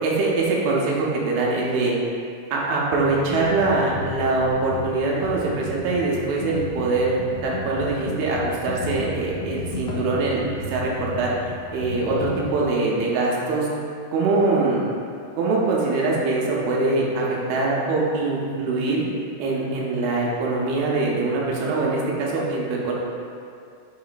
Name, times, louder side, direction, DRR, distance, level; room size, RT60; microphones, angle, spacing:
voice 1, 0.0-2.0 2.5-7.2 7.4-10.4 10.7-11.3 11.7-13.7 14.1-14.8 15.4-19.0 19.4-22.9, right 3 dB, 90° right, -4 dB, 2.5 m, -23 dB
Computer keyboard, 3.0-12.5, left 3 dB, 85° left, 2.5 m, -33 dB
6.5 x 2.9 x 2.4 m, 2.3 s
omnidirectional pair, 4.2 m